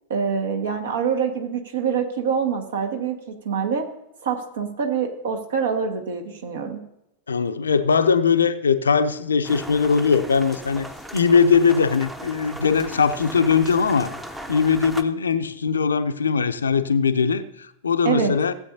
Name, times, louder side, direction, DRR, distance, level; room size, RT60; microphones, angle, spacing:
voice 1, 0.1-3.9 4.2-6.8 18.0-18.3, right 6 dB, 65° right, 4 dB, 1.6 m, -25 dB
voice 2, 7.3-14.1 14.5-18.5, left 6 dB, 70° left, 10 dB, 0.6 m, -20 dB
sound 1, 9.4-15.0, equal, 5° right, 0.8 m, -37 dB
16.0 x 8.4 x 2.7 m, 0.84 s
figure-of-eight pair, 90°, 0 cm